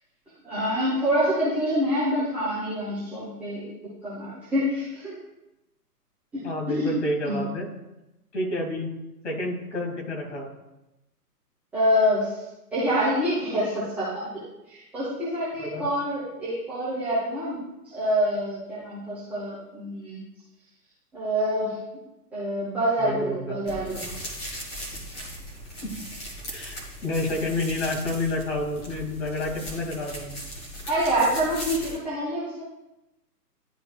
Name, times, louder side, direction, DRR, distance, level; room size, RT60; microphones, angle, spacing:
voice 1, 0.4-3.7 4.0-5.2 6.3-6.9 7.2-7.3 11.7-12.4 12.7-14.1 14.3-20.2 21.1-21.8 22.3-24.1 30.9-32.6, equal, 5° right, -13 dB, 0.8 m, -26 dB
voice 2, 6.4-7.7 8.3-9.0 9.2-10.5 15.6-15.9 23.0-23.6 25.8-26.0 26.5-30.4, left 1 dB, 45° left, -1 dB, 2.4 m, -29 dB
sound 1, 23.6-32.0, equal, 15° left, 1.4 m, -38 dB
11.5 x 4.4 x 2.3 m, 0.95 s
figure-of-eight pair, 130°, 48 cm